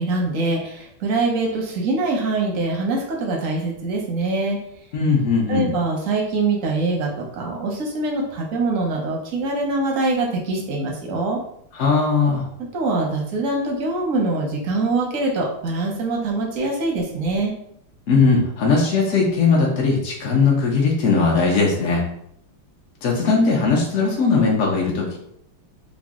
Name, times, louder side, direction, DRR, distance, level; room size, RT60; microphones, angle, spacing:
voice 1, 0.0-4.6 5.5-11.4 12.6-17.5, right 3 dB, 70° right, -1 dB, 0.7 m, -23 dB
voice 2, 4.9-5.7 11.8-12.5 18.1-22.0 23.0-25.2, left 4 dB, 75° left, -2 dB, 0.7 m, -19 dB
3.8 x 2.0 x 3.5 m, 0.70 s
omnidirectional pair, 2.2 m